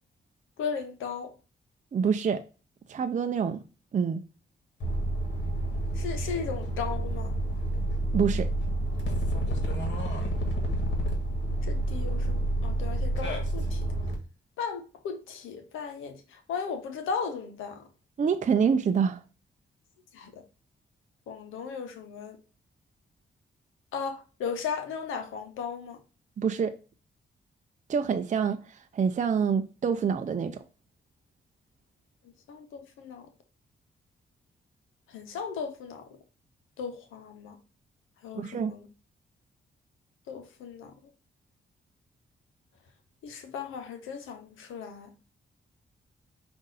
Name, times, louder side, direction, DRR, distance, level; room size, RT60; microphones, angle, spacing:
voice 1, 0.6-1.3 5.9-7.3 11.6-13.8 14.6-17.8 20.1-20.4 21.3-22.4 23.9-26.0 32.5-33.2 35.1-36.1 36.8-37.6 38.2-38.9 40.3-40.9 43.2-45.1, left 6 dB, 90° left, 0.8 m, -36 dB
voice 2, 1.9-2.4 2.9-3.6 3.9-4.2 8.1-8.5 18.2-19.2 26.4-26.7 27.9-30.6 38.3-38.7, right 6 dB, 40° right, 0.5 m, -26 dB
sound 1, 4.8-14.1, right 1 dB, 65° left, 1.5 m, -29 dB
5.2 x 2.6 x 3.9 m
supercardioid pair, 55°, 20 cm